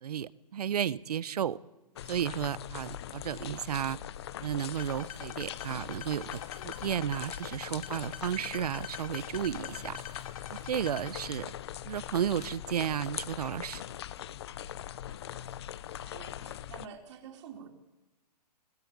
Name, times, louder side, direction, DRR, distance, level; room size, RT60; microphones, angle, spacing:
voice 1, 0.0-1.6 2.1-4.0 4.4-10.0 10.5-11.5 11.9-13.8, right 9 dB, 65° right, 19 dB, 0.9 m, -33 dB
sound 1, 2.0-16.9, left 11 dB, 40° left, 0.7 m, -41 dB
sound 2, 4.7-11.2, left 9 dB, 55° left, 2.3 m, -45 dB
voice 2, 16.1-17.7, right 7 dB, 45° right, 3 dB, 4.0 m, -48 dB
21.0 x 19.0 x 8.6 m, 1.0 s
hypercardioid pair, 160°, 21 cm